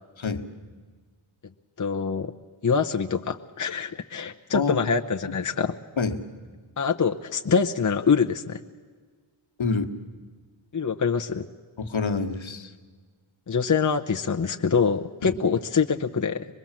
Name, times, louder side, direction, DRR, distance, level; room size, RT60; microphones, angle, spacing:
voice 1, 1.8-2.3 2.6-5.8 6.8-8.6 10.7-11.5 13.5-16.5, left 5 dB, 40° left, 4 dB, 0.8 m, -24 dB
voice 2, 9.6-9.9 11.8-12.7 15.2-15.3, left 4 dB, 65° left, 6 dB, 1.5 m, -27 dB
24.5 x 21.0 x 7.4 m, 1.5 s
wide cardioid pair, 60°, 50 cm